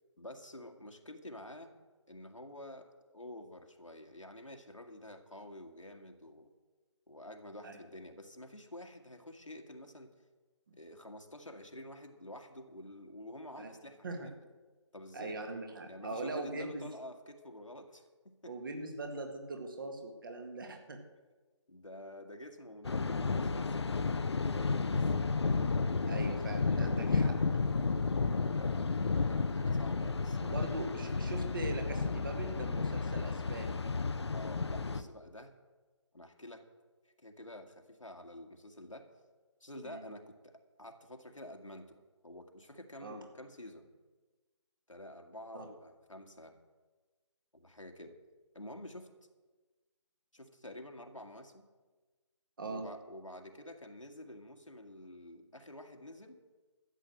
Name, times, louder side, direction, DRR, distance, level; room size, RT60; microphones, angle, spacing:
voice 1, 0.2-1.7 2.1-6.5 7.1-10.1 10.7-14.3 14.9-15.4 15.9-18.5 21.7-25.1 28.4-30.8 34.3-35.5 36.1-36.6 37.0-39.1 39.6-42.0 42.2-43.9 44.9-46.6 47.5-48.2 48.5-49.1 50.3-51.7 52.7-56.4, left 1 dB, 85° left, 4 dB, 1.9 m, -49 dB
voice 2, 15.1-16.9 18.4-21.0 26.1-27.4 30.4-33.8 39.8-40.0 43.0-43.2 45.5-45.7 52.6-52.9, right 2 dB, 45° right, 5 dB, 1.9 m, -41 dB
Thunder, 22.8-35.0, left 4 dB, 60° left, 0.7 m, -32 dB
12.5 x 7.9 x 7.8 m, 1.3 s
figure-of-eight pair, 150°, 16 cm